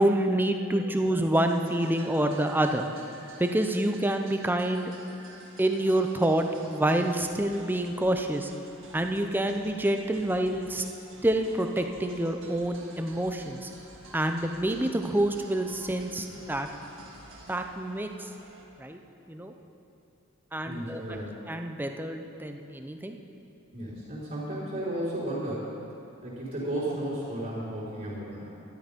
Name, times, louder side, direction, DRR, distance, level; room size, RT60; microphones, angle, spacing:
voice 1, 0.0-2.9 3.4-4.9 5.6-8.5 8.9-10.8 11.2-13.7 14.1-16.7 17.5-18.3 18.8-19.0 19.3-19.5 20.5-21.2 21.5-23.2, right 1 dB, 10° right, 5 dB, 0.6 m, -27 dB
sound 1, 1.3-18.6, right 1 dB, 60° right, 1.9 m, -50 dB
voice 2, 20.6-21.4 23.7-25.7 26.2-28.5, right 1 dB, 40° right, -10 dB, 3.6 m, -33 dB
12.5 x 12.0 x 5.3 m, 2.7 s
head